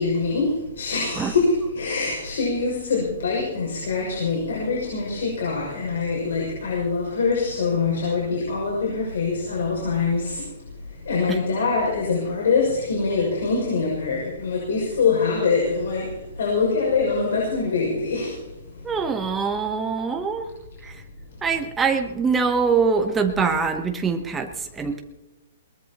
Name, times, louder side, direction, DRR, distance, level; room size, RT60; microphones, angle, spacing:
voice 1, 0.0-18.4 18.7-18.8, left 4 dB, 65° left, -2 dB, 6.4 m, -24 dB
voice 2, 18.8-20.5 20.8-20.9 21.4-25.0, right 5 dB, 10° right, 5 dB, 0.9 m, -23 dB
22.0 x 20.0 x 3.0 m, 0.99 s
hypercardioid pair, 175°, 0 cm